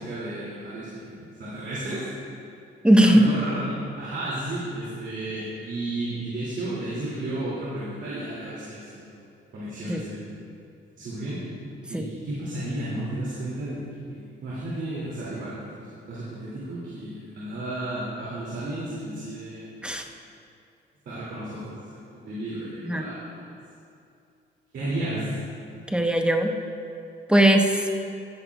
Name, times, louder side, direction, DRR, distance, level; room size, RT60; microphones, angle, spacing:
voice 1, 0.0-2.1 3.0-9.2 9.5-10.2 11.0-11.4 11.9-19.8 21.1-23.4 24.7-25.3, right 1 dB, 65° right, -9 dB, 2.5 m, -33 dB
voice 2, 2.8-3.3 9.9-10.0 11.9-12.0 19.8-20.0 22.9-23.1 25.9-26.5 27.3-27.8, right 1 dB, 5° right, 3 dB, 0.8 m, -19 dB
13.5 x 10.0 x 2.3 m, 2.5 s
cardioid pair, 90°, 20 cm